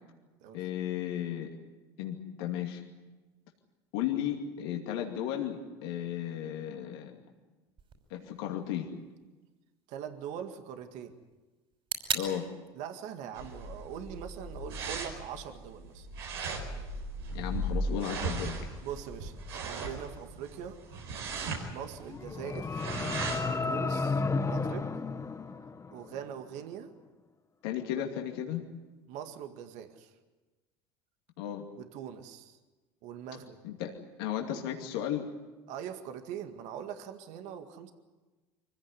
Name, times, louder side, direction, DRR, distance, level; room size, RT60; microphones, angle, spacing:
voice 1, 0.5-1.5 2.0-2.8 3.9-7.1 8.1-8.9 12.1-12.4 17.3-18.7 27.6-28.6 31.4-31.6 33.6-35.3, left 10 dB, 75° left, 1 dB, 2.5 m, -34 dB
sound 1, 7.8-15.8, right 6 dB, 45° right, 5.7 m, -43 dB
voice 2, 9.9-11.2 12.7-16.1 18.8-19.3 19.6-20.8 21.7-22.9 23.4-24.9 25.9-26.9 28.0-28.1 29.1-30.1 31.8-32.6 33.0-33.6 35.7-37.9, right 9 dB, 65° right, 7 dB, 2.0 m, -42 dB
sound 2, 13.3-23.6, right 2 dB, 85° right, 4.8 m, -37 dB
sound 3, 22.0-26.2, left 3 dB, 25° left, 1.2 m, -32 dB
24.5 x 16.0 x 9.8 m, 1.2 s
hypercardioid pair, 75°, 13 cm